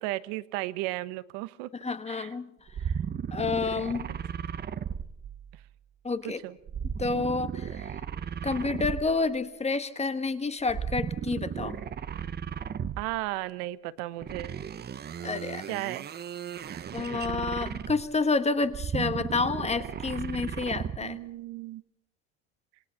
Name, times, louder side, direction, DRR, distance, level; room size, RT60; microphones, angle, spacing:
voice 1, 0.0-1.7 2.1-2.3 2.8-3.0 6.2-6.6 13.0-14.6 15.7-16.1 16.7-16.9 17.5-17.6 21.0-21.8, right 18 dB, 70° right, 15 dB, 1.2 m, -35 dB
voice 2, 1.8-2.5 3.3-4.1 6.0-6.4 7.0-7.9 8.4-11.8 15.2-15.6 16.9-21.2, left 4 dB, 15° left, 11 dB, 1.3 m, -29 dB
sound 1, 2.7-5.7 6.7-9.4 10.6-13.3 14.2-18.2 18.6-21.1, right 8 dB, 25° right, 0.8 m, -35 dB
27.0 x 20.0 x 5.8 m, 0.78 s
supercardioid pair, 115°, 40 cm